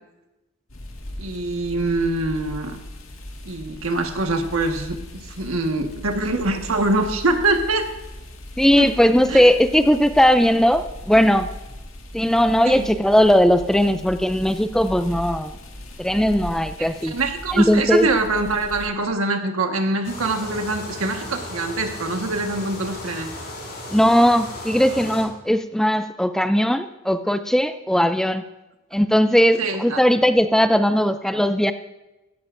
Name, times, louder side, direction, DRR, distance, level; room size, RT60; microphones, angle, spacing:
sound 1, 0.7-18.9, left 1 dB, 75° left, 1.9 m, -38 dB
voice 1, 1.2-2.8 3.4-7.9 8.8-8.9 9.3-9.4 12.7-12.9 16.8-23.3 29.6-30.0, right 2 dB, 90° right, 4 dB, 1.5 m, -24 dB
voice 2, 8.6-11.5 12.1-15.6 16.0-17.1 17.5-18.1 23.9-28.4 28.9-31.7, equal, ahead, 9 dB, 0.3 m, -18 dB
sound 2, 20.0-25.2, left 1 dB, 50° left, 4.6 m, -35 dB
16.0 x 14.0 x 2.6 m, 1.0 s
head